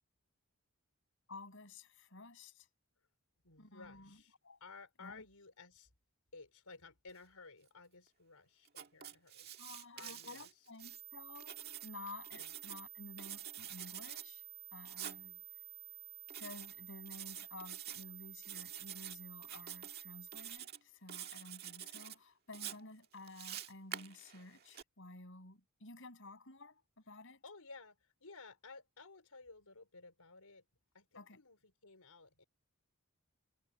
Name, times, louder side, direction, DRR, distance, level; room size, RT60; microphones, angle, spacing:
voice 1, 1.3-2.7 3.6-4.6 5.0-5.2 9.6-14.4 14.7-15.4 16.4-27.4 31.1-31.4, left 2 dB, 55° left, 7.8 m, -53 dB
voice 2, 3.4-4.3 4.6-5.9 6.3-9.5 10.0-10.7 12.4-12.5 15.2-15.5 27.4-30.6 30.9-32.4, left 4 dB, 85° left, 4.6 m, -56 dB
Writing, 8.7-11.0 11.4-12.8 13.2-14.3 14.9-15.2 16.3-16.7 17.1-18.0 18.4-19.2 19.4-20.0 20.3-20.8 21.1-22.2 22.5-24.8, right 10 dB, 45° right, 1.8 m, -47 dB
sound 1, 10.8-20.6, right 17 dB, 80° right, 4.5 m, -52 dB
head